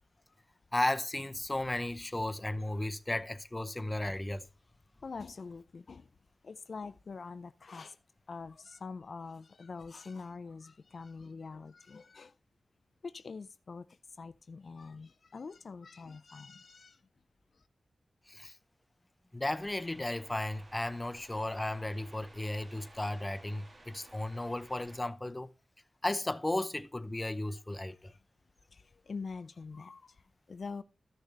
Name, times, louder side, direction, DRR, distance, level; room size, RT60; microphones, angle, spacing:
voice 1, 0.7-4.5 18.3-18.6 19.3-25.5 26.0-28.1, left 1 dB, 20° left, 0.6 m, -35 dB
voice 2, 5.0-6.1 6.4-8.0 8.3-12.4 13.0-17.0 17.5-17.7 28.0-28.2 28.7-30.8, left 4 dB, 65° left, 0.4 m, -45 dB
sound 1, 19.5-25.0, right 2 dB, 50° right, 1.8 m, -57 dB
13.5 x 6.5 x 3.3 m
wide cardioid pair, 75°, 0 cm